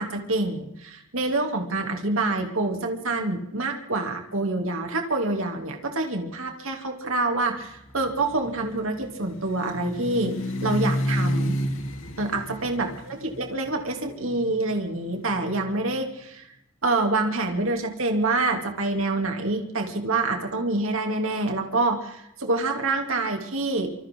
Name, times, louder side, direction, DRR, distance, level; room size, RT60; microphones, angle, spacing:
voice 1, 0.0-10.3 10.6-11.6 12.2-16.5 16.8-23.9, right 2 dB, 70° right, 3 dB, 3.3 m, -26 dB
sound 1, 7.8-15.8, equal, 65° left, 3.8 m, -31 dB
27.5 x 26.0 x 4.0 m, 0.82 s
head